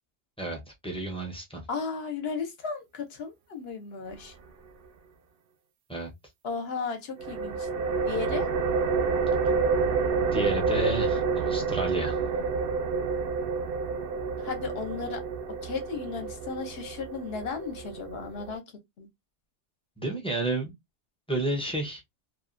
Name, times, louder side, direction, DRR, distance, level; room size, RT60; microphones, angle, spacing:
voice 1, 0.4-1.6 5.9-6.1 10.3-12.2 20.0-20.7 21.3-22.0, right 1 dB, 5° left, 0.6 m, -31 dB
voice 2, 1.7-4.3 6.4-7.7 8.1-8.5 14.4-15.2 15.6-18.6 19.0-19.1, left 5 dB, 60° left, 1.0 m, -35 dB
sound 1, 7.2-18.6, right 5 dB, 60° right, 0.7 m, -29 dB
2.7 x 2.3 x 2.4 m
omnidirectional pair, 1.2 m